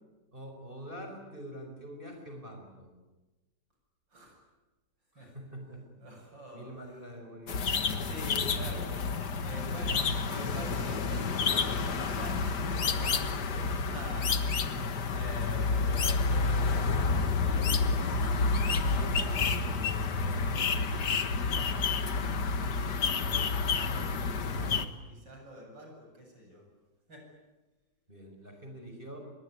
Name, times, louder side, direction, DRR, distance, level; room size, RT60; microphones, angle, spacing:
voice 1, 0.3-2.9 5.1-6.0 6.5-7.6 28.1-29.2, equal, 25° right, 3 dB, 5.1 m, -45 dB
voice 2, 6.0-6.7 7.7-9.0 9.4-14.4 15.1-18.2 18.8-20.6 23.0-26.7 27.1-27.3, equal, 70° right, 2 dB, 8.6 m, -46 dB
sound 1, 7.5-24.8, left 4 dB, 60° left, 2.0 m, -29 dB
26.5 x 22.5 x 9.8 m, 1.2 s
omnidirectional pair, 2.0 m